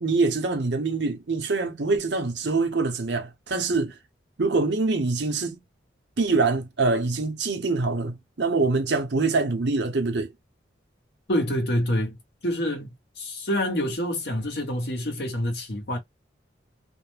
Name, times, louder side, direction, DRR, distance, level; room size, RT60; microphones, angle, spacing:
voice 1, 0.0-4.0 4.4-5.6 6.2-10.3, right 3 dB, 65° right, 0.7 m, -24 dB
voice 2, 11.3-12.1 12.4-12.9 13.2-16.0, equal, 60° left, 0.9 m, -26 dB
2.4 x 2.1 x 3.1 m
head